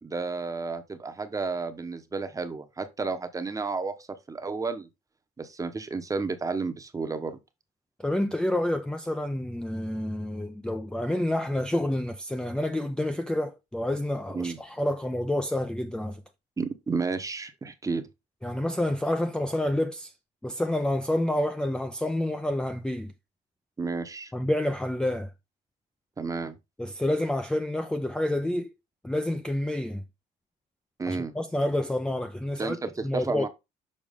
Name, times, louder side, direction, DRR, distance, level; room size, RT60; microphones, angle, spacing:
voice 1, 0.0-4.9 5.4-7.4 14.3-14.6 16.6-18.0 23.8-24.3 26.2-26.6 31.0-31.3 32.6-33.5, right 4 dB, 20° right, 0.9 m, -32 dB
voice 2, 8.0-16.2 18.4-20.1 20.4-23.1 24.3-25.3 26.8-28.7 29.0-30.0 31.1-32.8 33.0-33.5, left 1 dB, 5° left, 0.5 m, -28 dB
6.6 x 4.7 x 3.6 m
cardioid pair, 110°, 17 cm